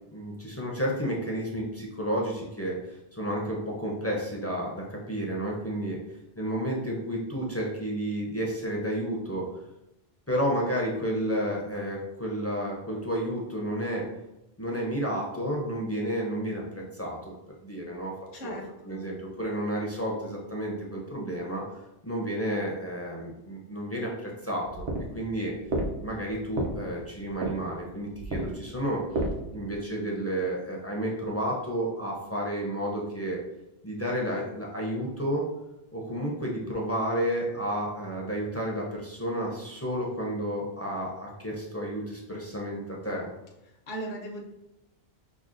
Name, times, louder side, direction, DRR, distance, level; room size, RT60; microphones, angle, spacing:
voice 1, 0.1-6.0 6.4-9.5 10.3-14.0 14.6-17.3 17.6-18.6 18.8-21.6 22.0-24.9 25.1-25.5 26.0-29.0 29.5-33.4 33.8-35.4 35.9-43.3, equal, 20° left, -3 dB, 0.4 m, -31 dB
voice 2, 18.3-19.1 43.9-44.4, right 1 dB, 60° left, -1 dB, 0.8 m, -38 dB
sound 1, 24.6-29.8, right 1 dB, 75° right, 0.9 m, -33 dB
5.8 x 2.0 x 2.5 m, 0.91 s
omnidirectional pair, 1.0 m